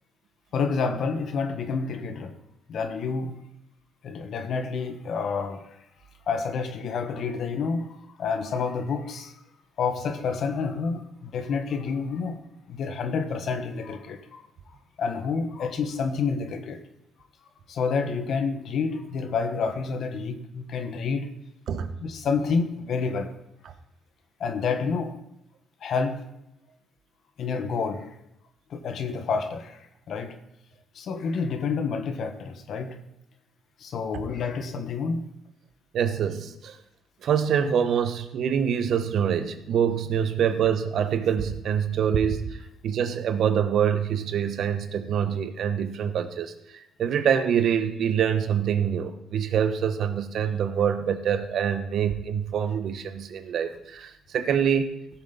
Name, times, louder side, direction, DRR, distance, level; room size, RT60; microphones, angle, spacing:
voice 1, 0.5-2.3 2.7-3.4 4.0-5.7 6.3-9.3 9.8-12.4 12.7-14.4 15.0-16.8 17.7-21.3 22.0-23.3 24.4-25.2 25.8-26.3 27.4-28.1 28.7-29.8 30.1-30.4 30.9-33.0 33.8-35.3, left 5 dB, 65° left, 1.3 m, -29 dB
voice 2, 35.9-36.8 37.2-42.6 42.8-54.9, right 8 dB, 70° right, 1.0 m, -25 dB
16.0 x 7.2 x 4.0 m
cardioid pair, 90°, 0 cm